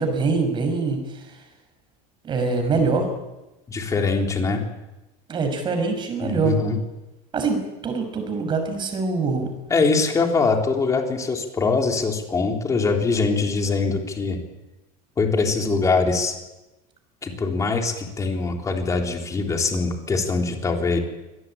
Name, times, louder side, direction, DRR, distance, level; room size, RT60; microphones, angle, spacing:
voice 1, 0.0-1.4 2.2-3.1 5.3-6.6 7.3-9.5, right 4 dB, 25° right, 6 dB, 5.9 m, -24 dB
voice 2, 3.7-4.6 6.2-6.8 9.7-14.4 15.2-16.3 17.2-21.0, left 4 dB, 15° left, 3 dB, 3.5 m, -23 dB
24.5 x 18.5 x 8.9 m, 1.0 s
cardioid pair, 160°, 18 cm